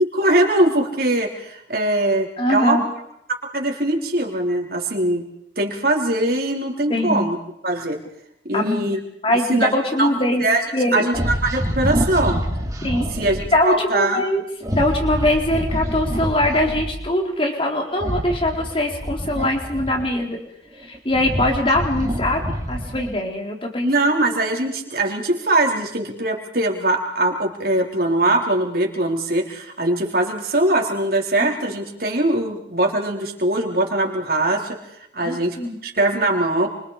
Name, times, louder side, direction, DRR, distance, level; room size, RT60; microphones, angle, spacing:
voice 1, 0.0-2.8 3.5-5.2 5.6-7.4 7.6-8.0 8.5-9.0 9.3-10.1 10.4-10.6 10.9-12.4 13.1-14.2 23.8-34.8 35.1-35.6 35.8-36.7, right 1 dB, 55° right, 1 dB, 4.2 m, -21 dB
voice 2, 2.4-2.8 6.9-7.3 8.5-8.9 9.2-10.4 10.7-11.1 12.8-13.1 13.5-14.4 14.7-20.4 20.8-22.4 22.7-23.9 31.4-31.5 35.2-35.8, left 1 dB, 30° left, 2 dB, 4.3 m, -22 dB
sound 1, 11.1-13.5 14.6-17.0 17.9-20.2 20.8-23.2, equal, 20° right, 3.6 m, -26 dB
29.5 x 25.0 x 5.1 m, 0.77 s
head